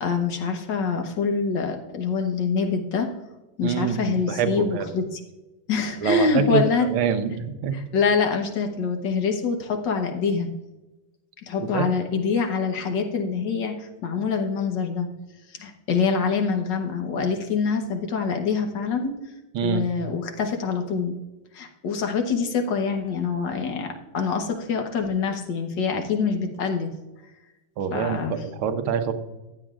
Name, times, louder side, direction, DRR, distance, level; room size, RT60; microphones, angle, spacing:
voice 1, 0.0-3.1 3.6-5.2 5.7-6.9 7.7-10.5 11.5-15.1 15.6-19.1 19.6-21.2 21.5-26.9 27.9-28.3, left 5 dB, 60° left, 4 dB, 1.7 m, -25 dB
voice 2, 3.6-4.9 6.0-7.8 11.7-11.9 19.5-19.9 27.8-29.1, right 7 dB, 85° right, 8 dB, 1.7 m, -25 dB
14.5 x 10.0 x 2.5 m, 1.1 s
omnidirectional pair, 2.3 m